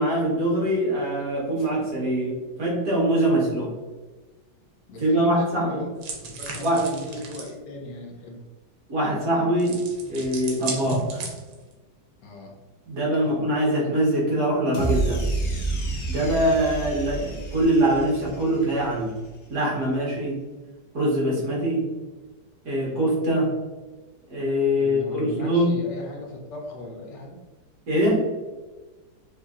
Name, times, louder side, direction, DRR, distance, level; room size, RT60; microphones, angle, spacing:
voice 1, 0.0-3.7 5.0-5.8 6.6-6.8 8.9-9.8 10.1-11.2 12.9-15.2 16.1-19.1 19.5-20.4 20.9-21.8 22.7-23.5 24.3-25.7 27.9-28.3, right 1 dB, 60° right, -5 dB, 1.9 m, -23 dB
voice 2, 4.9-5.9 6.2-8.4 12.2-12.6 24.8-27.4, left 1 dB, 85° left, -1 dB, 1.5 m, -37 dB
sound 1, 6.0-7.5 9.6-11.7, right 4 dB, 90° right, 1.5 m, -35 dB
sound 2, 14.7-19.1, right 3 dB, 55° left, 0.8 m, -29 dB
4.8 x 2.8 x 2.5 m, 1.2 s
omnidirectional pair, 1.9 m